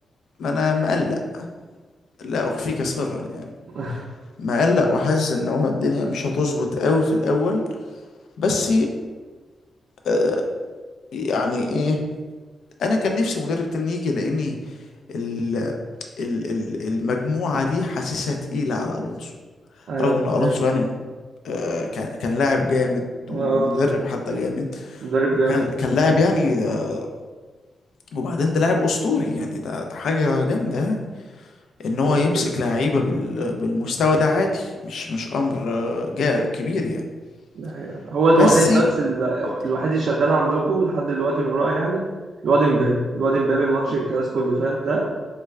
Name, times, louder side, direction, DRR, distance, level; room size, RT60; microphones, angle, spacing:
voice 1, 0.4-1.5 2.2-3.4 4.4-7.6 8.4-8.9 10.0-10.4 11.1-12.0 12.8-14.6 15.1-15.7 16.2-19.3 20.0-20.9 21.4-25.0 25.3-27.1 28.1-31.0 31.8-37.0 38.4-38.8, left 3 dB, 80° left, 3 dB, 0.4 m, -23 dB
voice 2, 19.9-20.5 23.3-23.7 24.3-24.4 25.0-25.6 32.1-32.2 37.6-38.6 39.0-42.0 42.4-45.0, right 2 dB, 60° right, -3 dB, 0.4 m, -21 dB
3.1 x 2.2 x 3.4 m, 1.4 s
wide cardioid pair, 165°, 0 cm